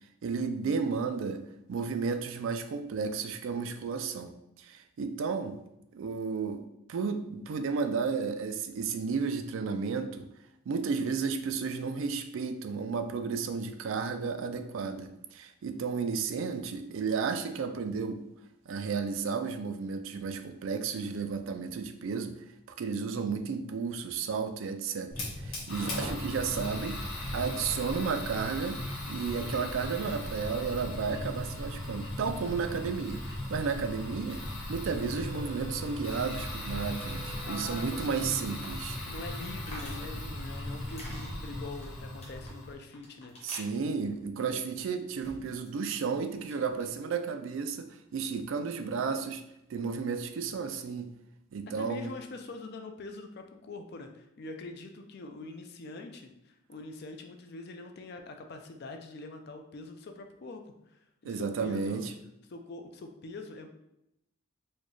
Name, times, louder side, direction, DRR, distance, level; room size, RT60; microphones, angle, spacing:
voice 1, 0.2-1.4 1.7-5.6 5.9-10.3 10.7-18.2 18.7-22.4 22.7-34.4 34.7-39.0 43.4-49.4 49.7-51.1 51.5-52.1 61.2-62.1, right 5 dB, 65° right, 8 dB, 0.3 m, -33 dB
Fire, 25.1-42.7, left 1 dB, 70° left, 1.3 m, -38 dB
voice 2, 25.8-26.2 37.4-38.6 39.0-43.3 51.8-62.0 62.5-63.7, left 3 dB, 50° left, 5 dB, 0.4 m, -44 dB
sound 1, 35.1-38.7, right 4 dB, 85° left, 0.7 m, -51 dB
sound 2, 37.6-45.8 46.1-46.9, left 1 dB, 30° left, 1.0 m, -51 dB
4.2 x 2.3 x 3.1 m, 0.83 s
head